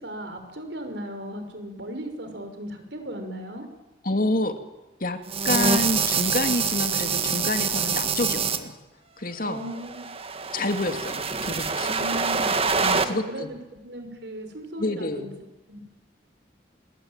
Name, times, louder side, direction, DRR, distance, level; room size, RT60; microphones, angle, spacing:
voice 1, 0.0-3.6 9.4-10.1 11.8-13.6 13.8-15.3 15.7-15.8, equal, 70° right, 7 dB, 5.5 m, -36 dB
voice 2, 4.0-4.5 5.0-5.2 5.4-8.8 9.2-9.6 10.5-12.1 12.8-13.5 14.8-15.3, left 2 dB, 50° left, 7 dB, 2.5 m, -28 dB
sound 1, 5.3-8.6 9.7-13.1, right 5 dB, 35° right, 1.7 m, -25 dB
27.5 x 22.0 x 9.0 m, 1.1 s
head